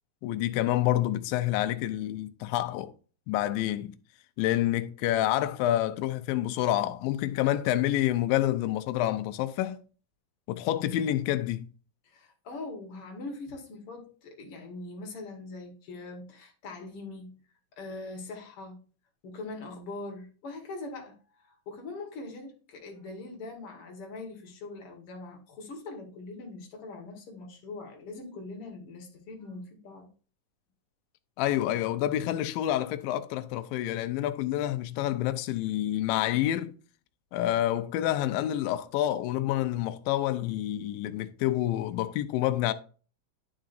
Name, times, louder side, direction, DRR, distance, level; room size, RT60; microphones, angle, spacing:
voice 1, 0.2-2.9 3.3-4.0 4.4-9.8 10.5-11.7 31.4-36.8 37.3-42.7, left 13 dB, 85° left, 2.3 m, -28 dB
voice 2, 12.0-17.4 17.8-18.8 19.2-30.1, left 3 dB, 50° left, 2.1 m, -42 dB
10.5 x 5.0 x 2.6 m
omnidirectional pair, 4.0 m